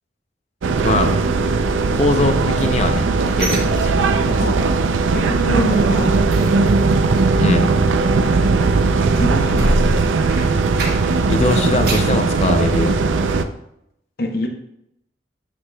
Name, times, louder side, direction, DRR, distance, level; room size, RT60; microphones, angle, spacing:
sound 1, 0.6-13.5, right 3 dB, 90° right, 0.4 m, -18 dB
voice 1, 0.8-1.2 1.9-4.1 7.4-7.7 11.2-13.0, left 2 dB, 35° left, 7 dB, 0.5 m, -21 dB
sound 2, 2.4-4.6 4.8-5.2 5.5-11.3 11.6-12.2 12.7-12.8 13.2-13.3, right 1 dB, 55° right, 1.3 m, -28 dB
voice 2, 4.3-4.6 5.1-6.1 9.2-9.8 14.2-14.5, left 1 dB, 50° left, 4 dB, 0.8 m, -24 dB
7.9 x 5.9 x 2.2 m, 0.78 s
head